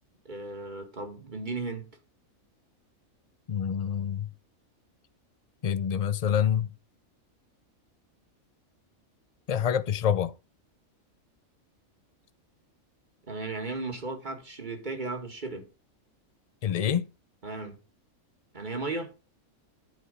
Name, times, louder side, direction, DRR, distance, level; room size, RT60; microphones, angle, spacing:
voice 1, 0.3-1.9 13.3-15.7 17.4-17.8 18.5-19.1, right 3 dB, 35° right, 2.1 m, -35 dB
voice 2, 3.5-4.3 5.6-6.7 9.5-10.3 16.6-17.1, left 8 dB, 70° left, 0.3 m, -26 dB
11.0 x 4.9 x 5.3 m
omnidirectional pair, 1.5 m